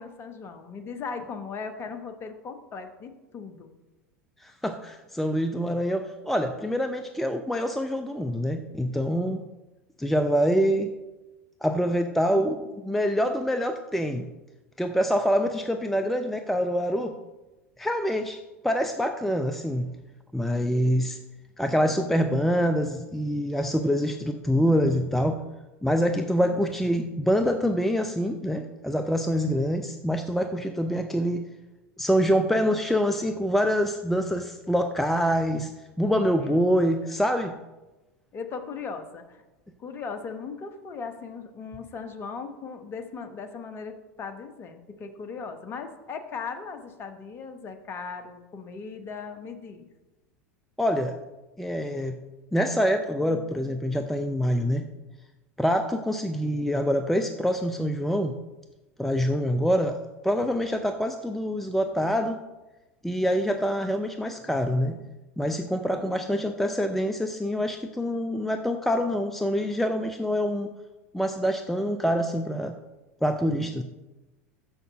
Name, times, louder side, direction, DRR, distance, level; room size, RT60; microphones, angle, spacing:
voice 1, 0.0-3.7 36.4-36.6 37.0-37.1 38.3-39.4 39.8-49.9 65.8-66.3, left 5 dB, 30° left, 7 dB, 1.1 m, -38 dB
voice 2, 4.4-9.4 10.0-10.9 11.6-14.3 14.8-17.1 17.8-19.9 20.3-21.2 21.6-25.4 25.8-31.4 32.0-35.7 36.0-37.5 50.8-51.2 51.6-52.2 52.5-54.9 55.6-58.4 59.0-62.4 63.0-65.0 65.4-70.7 71.1-72.8 73.2-73.8, equal, 5° left, 6 dB, 0.5 m, -25 dB
6.6 x 6.4 x 6.2 m, 1.1 s
figure-of-eight pair, 80°, 8 cm